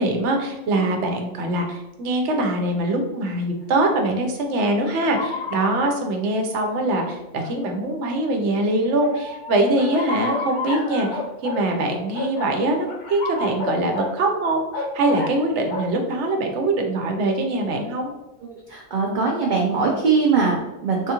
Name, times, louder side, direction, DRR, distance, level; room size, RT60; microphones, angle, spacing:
voice 1, 0.0-18.1, right 2 dB, 75° right, 3 dB, 1.0 m, -23 dB
sound 1, 4.9-5.8 6.6-6.7 7.4-7.5 9.0-11.6 12.1-14.2 14.7-15.3 15.7-15.9, left 3 dB, 50° left, 0.6 m, -30 dB
voice 2, 18.7-21.1, right 4 dB, 55° right, -1 dB, 0.6 m, -21 dB
3.6 x 2.3 x 2.9 m, 0.95 s
omnidirectional pair, 1.2 m